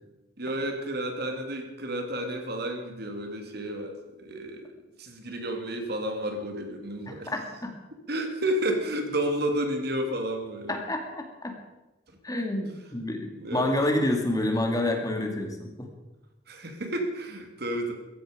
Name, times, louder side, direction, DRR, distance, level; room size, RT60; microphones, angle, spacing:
voice 1, 0.4-4.7 5.0-7.3 8.1-10.8 13.4-13.7 16.5-17.9, right 1 dB, 60° right, 4 dB, 2.5 m, -31 dB
voice 2, 7.1-7.7 10.7-11.5 12.2-15.9, left 1 dB, 20° left, 3 dB, 2.3 m, -28 dB
16.5 x 15.0 x 5.1 m, 1.1 s
head